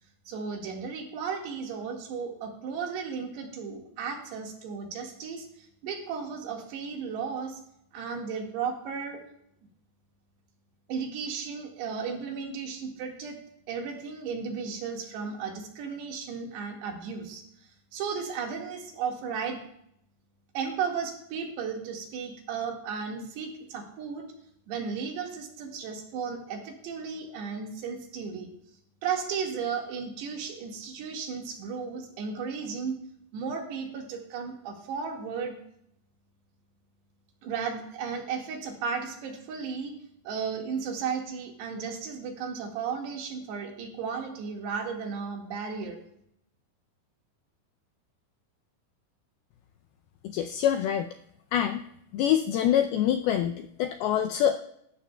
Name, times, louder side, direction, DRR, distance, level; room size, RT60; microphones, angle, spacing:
voice 1, 0.3-7.6 7.9-9.2 10.9-13.4 13.7-19.6 20.5-24.3 24.7-28.5 29.0-33.0 33.3-35.6 37.4-39.9 40.3-46.0, right 6 dB, 75° right, 1 dB, 3.8 m, -34 dB
voice 2, 50.3-51.1 51.5-51.8 52.1-54.6, left 10 dB, 85° left, 6 dB, 2.2 m, -25 dB
18.5 x 13.5 x 2.2 m, 0.74 s
omnidirectional pair, 5.0 m